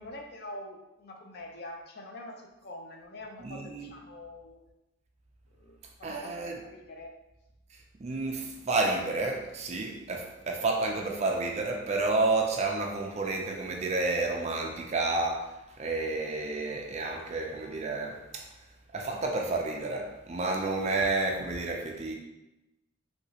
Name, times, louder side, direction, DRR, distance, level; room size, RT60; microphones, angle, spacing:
voice 1, 0.0-4.6 5.5-7.2, left 1 dB, 50° left, 2 dB, 0.4 m, -45 dB
voice 2, 3.4-3.9 6.0-6.6 7.7-18.5 18.9-22.1, right 3 dB, 30° right, 2 dB, 0.3 m, -30 dB
3.2 x 2.8 x 2.7 m, 0.95 s
head